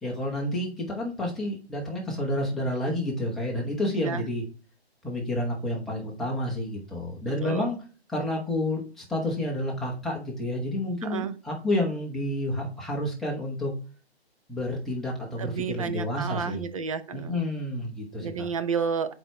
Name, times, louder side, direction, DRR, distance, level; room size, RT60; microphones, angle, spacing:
voice 1, 0.0-4.4 5.0-7.8 8.1-13.7 14.5-16.6 17.1-18.5, left 1 dB, ahead, 0.9 m, -30 dB
voice 2, 7.4-7.7 11.0-11.4 15.4-17.5 18.2-19.1, right 6 dB, 30° right, 0.5 m, -31 dB
7.6 x 4.6 x 2.9 m
hypercardioid pair, 150°, 32 cm